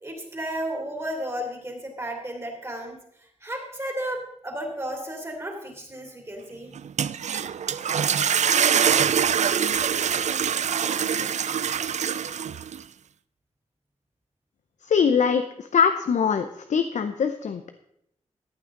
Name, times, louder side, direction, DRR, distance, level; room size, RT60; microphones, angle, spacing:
voice 1, 0.0-6.7, right 1 dB, 25° right, 1 dB, 2.9 m, -33 dB
sound 1, 6.8-12.8, right 8 dB, 75° right, 0.4 m, -24 dB
voice 2, 14.8-17.7, left 6 dB, 85° left, 8 dB, 0.7 m, -23 dB
14.5 x 8.6 x 3.8 m, 0.75 s
wide cardioid pair, 115°, 12 cm